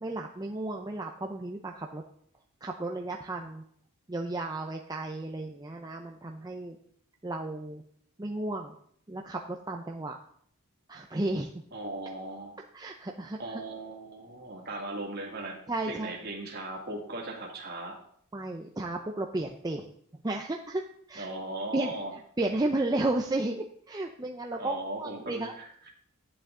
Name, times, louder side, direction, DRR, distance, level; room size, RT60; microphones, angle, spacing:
voice 1, 0.0-2.0 2.6-3.6 4.1-6.8 7.2-7.8 8.2-8.8 9.1-10.2 10.9-11.5 12.7-13.6 15.7-16.2 18.3-19.9 20.2-20.8 21.1-21.3 21.7-21.9 22.4-25.5, right 2 dB, 15° right, 2 dB, 0.5 m, -33 dB
voice 2, 11.7-12.5 13.4-15.6 15.9-18.0 21.2-22.1 24.5-25.9, right 2 dB, 45° right, -1 dB, 2.4 m, -38 dB
11.0 x 8.9 x 3.8 m, 0.64 s
head